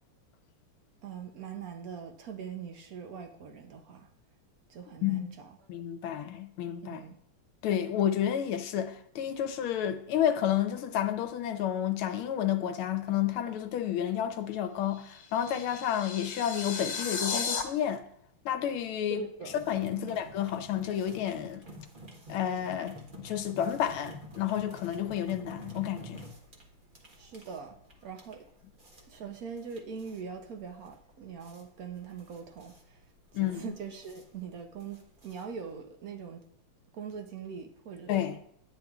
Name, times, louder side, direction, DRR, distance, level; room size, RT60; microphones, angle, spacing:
voice 1, 1.0-4.1 4.7-5.6 6.8-7.2 19.1-19.6 19.9-20.2 27.2-27.7 28.0-28.4 28.9-33.0 33.3-36.4 36.9-38.4, right 6 dB, 60° right, 0.9 m, -42 dB
voice 2, 5.0-5.3 5.7-7.0 7.6-18.0 18.5-19.2 19.7-21.7 22.3-26.2 33.3-33.6 38.1-38.4, left 10 dB, 80° left, 1.6 m, -30 dB
sound 1, 14.9-17.6, left 5 dB, 55° left, 1.8 m, -35 dB
sound 2, 19.5-35.8, equal, 30° right, 1.1 m, -50 dB
10.5 x 9.3 x 2.4 m
omnidirectional pair, 2.3 m